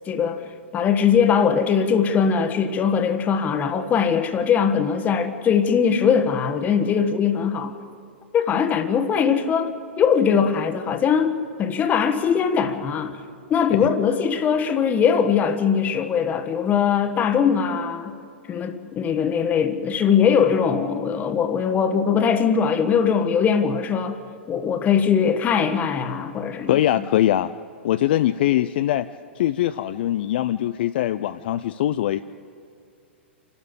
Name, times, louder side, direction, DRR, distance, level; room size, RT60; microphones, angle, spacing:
voice 1, 0.1-0.4 0.7-7.7 8.3-13.2 13.5-18.2 18.5-24.2 24.5-26.8, left 7 dB, 25° left, 1.4 m, -21 dB
voice 2, 26.7-27.5 27.8-29.1 29.4-32.2, left 13 dB, 55° left, 0.5 m, -22 dB
27.5 x 12.5 x 8.2 m
figure-of-eight pair, 105°, 6 cm